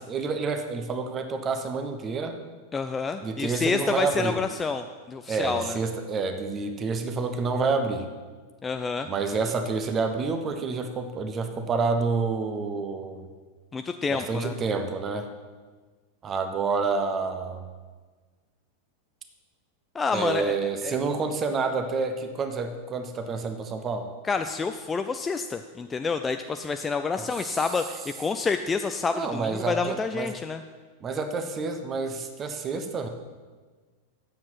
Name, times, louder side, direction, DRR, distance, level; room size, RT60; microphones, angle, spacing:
voice 1, 0.1-2.4 3.2-4.4 5.3-8.0 9.1-13.3 14.1-15.3 16.2-17.6 20.1-24.1 29.1-30.3 31.0-33.1, right 4 dB, 25° right, 7 dB, 0.9 m, -28 dB
voice 2, 2.7-5.8 8.6-9.1 13.7-14.5 19.9-20.9 24.2-30.6, left 4 dB, 15° left, 7 dB, 0.4 m, -28 dB
8.9 x 7.4 x 5.9 m, 1.4 s
figure-of-eight pair, 90°, 0 cm